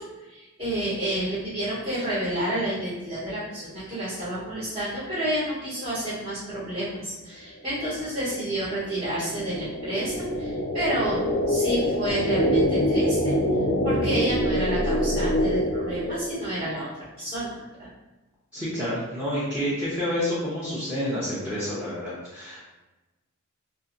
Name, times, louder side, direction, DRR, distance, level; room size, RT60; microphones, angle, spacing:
voice 1, 0.3-13.4 13.8-16.9 17.2-17.9, right 1 dB, 30° right, -11 dB, 1.1 m, -30 dB
sound 1, 7.8-16.6, equal, 65° left, 0.4 m, -25 dB
voice 2, 18.5-22.7, equal, 5° right, -11 dB, 0.7 m, -29 dB
2.7 x 2.6 x 2.5 m, 1.1 s
head